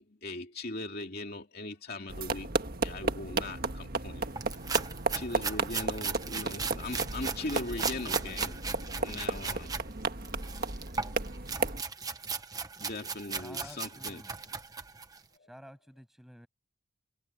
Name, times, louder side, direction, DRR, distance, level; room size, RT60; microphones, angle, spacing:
voice 1, 0.0-2.5 2.8-4.3 5.1-8.6 9.0-9.7 12.8-14.2 15.4-15.5, left 2 dB, 45° left, 2.8 m, -39 dB
sound 1, 2.1-11.8, right 3 dB, 45° right, 1.7 m, -34 dB
sound 2, 4.4-9.8 10.2-15.2, right 5 dB, 15° right, 1.2 m, -37 dB
voice 2, 13.2-14.4 15.4-16.5, equal, ahead, 7.6 m, -51 dB
head